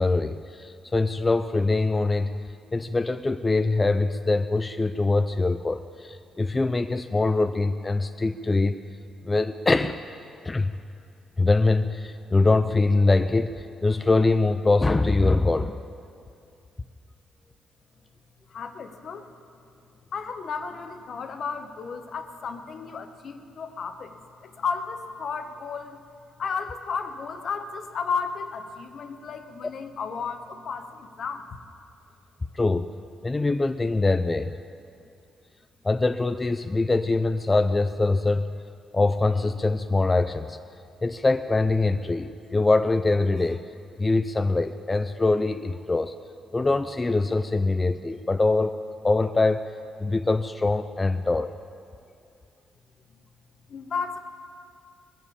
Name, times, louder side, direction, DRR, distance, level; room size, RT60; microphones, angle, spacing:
voice 1, 0.0-2.3 2.7-8.8 9.2-10.0 10.4-10.7 11.4-15.8 32.5-32.9 33.2-34.5 35.8-38.5 38.9-40.6 41.0-43.6 44.0-46.1 46.5-48.8 49.0-49.7 50.0-51.5, left 3 dB, 20° left, 9 dB, 0.4 m, -23 dB
voice 2, 18.5-19.3 20.1-24.2 24.4-26.0 26.4-31.5 53.7-54.2, left 5 dB, 55° left, 7 dB, 1.0 m, -33 dB
20.0 x 7.0 x 8.5 m, 2.5 s
cardioid pair, 90°, 0 cm